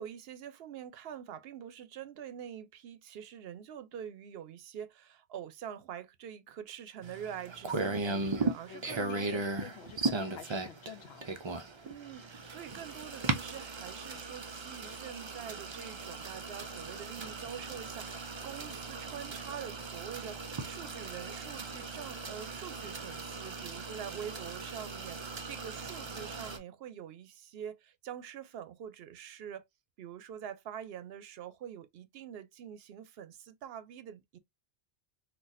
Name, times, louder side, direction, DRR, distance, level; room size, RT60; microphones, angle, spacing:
voice 1, 0.0-9.3 11.8-29.6 30.0-34.4, right 9 dB, 75° right, 0.8 m, -45 dB
sound 1, 7.0-26.6, right 3 dB, 40° right, 0.4 m, -38 dB
voice 2, 8.4-11.4, left 8 dB, 80° left, 0.8 m, -49 dB
4.0 x 2.4 x 2.5 m
omnidirectional pair, 1.0 m